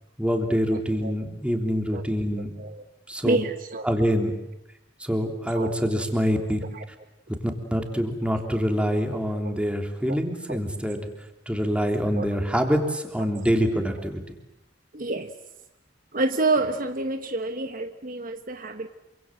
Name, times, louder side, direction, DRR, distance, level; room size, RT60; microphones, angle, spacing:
voice 1, 0.2-2.6 3.1-3.4 3.8-4.3 5.0-6.6 7.7-11.0 11.5-14.2, equal, 5° right, 4 dB, 3.3 m, -25 dB
voice 2, 0.7-1.1 1.9-2.1 2.6-2.8 3.2-3.9 5.5-5.8 6.7-6.9 9.4-9.6 10.1-10.2 10.5-10.6 12.1-12.5 14.9-15.3 16.1-18.9, right 2 dB, 45° right, 8 dB, 1.2 m, -28 dB
27.5 x 25.5 x 7.7 m, 0.88 s
head